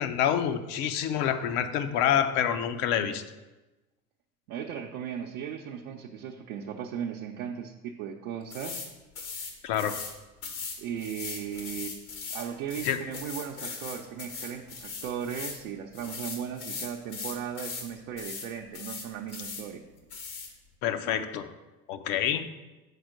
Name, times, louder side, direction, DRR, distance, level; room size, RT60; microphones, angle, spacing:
voice 1, 0.0-3.2 9.6-10.0 12.8-13.0 20.8-21.5 21.9-22.4, left 9 dB, 60° left, 9 dB, 0.8 m, -27 dB
voice 2, 4.5-8.8 10.8-12.0 12.3-19.8, right 8 dB, 70° right, 0 dB, 0.8 m, -37 dB
sound 1, 8.5-8.9 9.2-10.1 10.4-15.6 15.9-17.9 18.2-18.5 18.7-19.6 20.1-20.5, left 5 dB, 80° left, 1.7 m, -39 dB
6.8 x 4.3 x 6.4 m, 1.1 s
hypercardioid pair, 75°, 43 cm